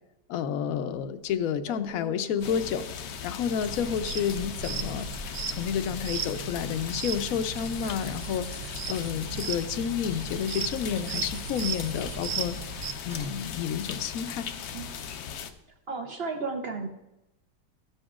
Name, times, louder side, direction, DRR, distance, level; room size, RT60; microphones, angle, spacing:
voice 1, 0.3-2.9 3.2-5.1 5.5-12.6 13.0-14.5, left 8 dB, 65° left, 10 dB, 0.9 m, -30 dB
sound 1, 1.0-1.1 1.3-1.4 1.7-4.4 4.7-4.9 5.2-5.3 6.9-10.9 11.1-13.6 13.8-13.9, equal, 5° right, 0.6 m, -49 dB
sound 2, 2.4-15.5, left 7 dB, 90° left, 1.3 m, -39 dB
sound 3, 3.6-12.9, right 7 dB, 75° right, 1.2 m, -37 dB
voice 2, 15.9-16.9, right 4 dB, 55° right, 4 dB, 0.7 m, -33 dB
13.0 x 8.0 x 2.4 m, 0.91 s
omnidirectional pair, 1.8 m